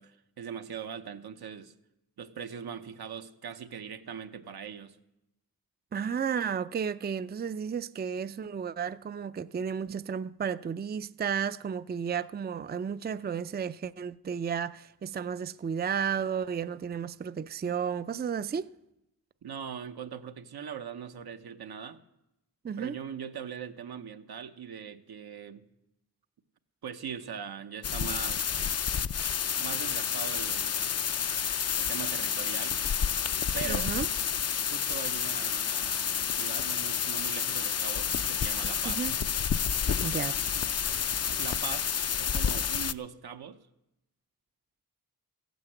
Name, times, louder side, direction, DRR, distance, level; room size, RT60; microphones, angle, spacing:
voice 1, 0.0-1.7 2.2-5.0 19.4-22.0 22.8-25.6 26.8-28.5 29.6-30.8 31.8-32.8 33.5-34.0 34.7-39.1 41.4-43.6, right 7 dB, 85° right, 0.9 m, -41 dB
voice 2, 5.9-18.7 22.6-23.0 33.6-34.1 38.8-39.2 40.0-40.4, right 7 dB, 25° right, 0.4 m, -33 dB
sound 1, 27.8-42.9, left 7 dB, 45° left, 0.5 m, -30 dB
14.5 x 9.3 x 7.9 m
cardioid pair, 65°, 37 cm